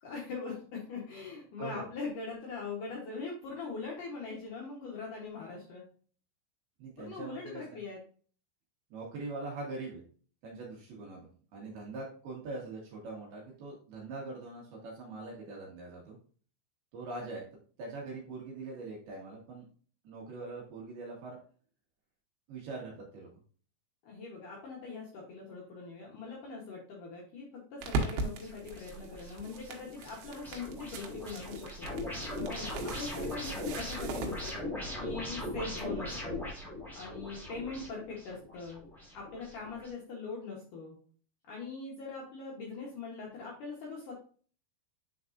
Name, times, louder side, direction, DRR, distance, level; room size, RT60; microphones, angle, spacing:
voice 1, 0.0-5.9 7.0-8.0 11.6-11.8 24.0-31.9 32.3-34.6 35.0-36.5 36.9-38.8 39.1-41.0 41.5-44.1, left 4 dB, 80° left, -3 dB, 1.8 m, -42 dB
voice 2, 1.6-1.9 6.8-7.6 8.9-10.0 10.4-16.2 16.9-17.4 17.8-19.6 20.0-21.4 22.5-23.3, right 3 dB, 65° right, -3 dB, 2.9 m, -42 dB
sound 1, 27.8-34.5, right 3 dB, 80° right, 3.3 m, -40 dB
sound 2, 28.4-39.9, left 1 dB, ahead, 0.4 m, -40 dB
9.3 x 4.0 x 2.5 m, 0.43 s
omnidirectional pair, 5.3 m